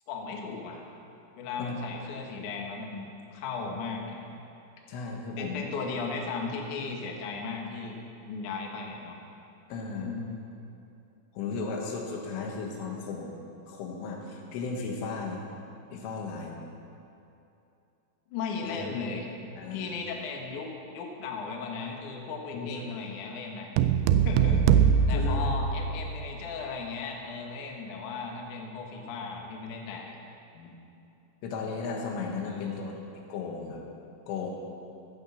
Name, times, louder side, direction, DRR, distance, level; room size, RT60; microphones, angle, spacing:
voice 1, 0.1-0.8 1.4-4.3 5.4-9.2 9.9-10.4 18.3-19.3 19.7-23.7 24.2-30.2 32.4-33.0, left 4 dB, 60° left, 1 dB, 2.2 m, -36 dB
voice 2, 4.9-5.7 9.7-10.1 11.4-13.3 13.7-15.4 15.9-16.6 18.6-18.8 19.6-19.9 22.5-22.9 24.4-24.6 25.1-25.5 30.6-30.8 31.4-32.9 33.3-33.8 34.3-34.5, left 4 dB, 85° left, 0 dB, 4.1 m, -35 dB
sound 1, 23.8-26.3, right 7 dB, 85° right, 2.7 m, -22 dB
15.0 x 9.2 x 7.2 m, 2.7 s
omnidirectional pair, 5.6 m